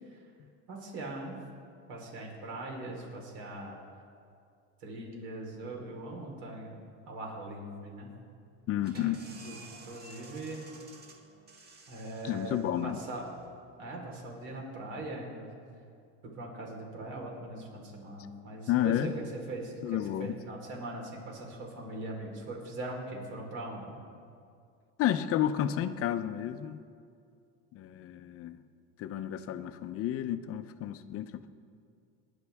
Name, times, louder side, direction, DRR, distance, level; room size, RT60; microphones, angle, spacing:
voice 1, 0.7-1.4 1.9-3.8 4.8-6.8 7.1-8.1 9.4-9.6 9.9-10.7 11.9-13.3 13.8-15.5 16.4-19.1 19.5-24.0, right 2 dB, 70° right, 0 dB, 4.2 m, -41 dB
voice 2, 8.7-9.2 12.2-13.1 18.7-19.2 19.8-20.4 25.0-26.8 27.7-28.6 29.0-31.5, left 11 dB, 40° left, 10 dB, 0.7 m, -31 dB
sound 1, 8.8-14.3, right 3 dB, 25° right, 1.6 m, -53 dB
28.0 x 10.5 x 3.6 m, 2.3 s
cardioid pair, 140°, 36 cm